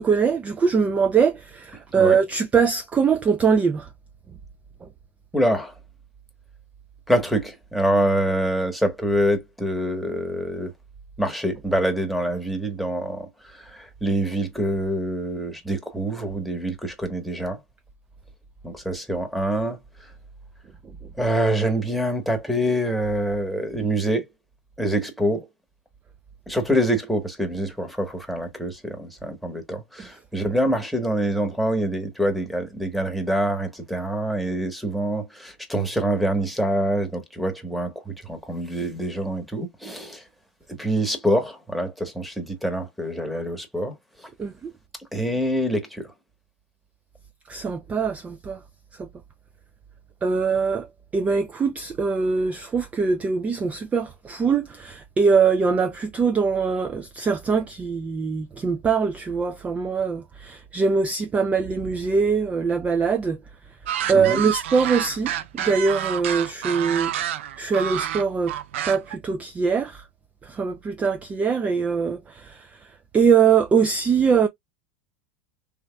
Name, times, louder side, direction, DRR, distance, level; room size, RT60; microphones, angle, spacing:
voice 1, 0.0-3.9 44.4-44.7 47.5-48.6 49.0-49.1 50.2-50.9 51.1-63.4 64.1-68.5 68.9-70.0 70.4-72.7 73.1-74.5, right 5 dB, 20° right, 0.4 m, -22 dB
voice 2, 5.3-5.7 7.1-10.7 11.2-17.6 18.6-19.8 21.2-24.3 24.8-25.5 26.5-40.2 40.8-43.9 45.1-46.1 64.1-64.4, right 1 dB, ahead, 1.2 m, -25 dB
sound 1, 63.9-69.2, right 11 dB, 75° right, 0.5 m, -29 dB
3.4 x 2.9 x 2.2 m
hypercardioid pair, 95°, 7 cm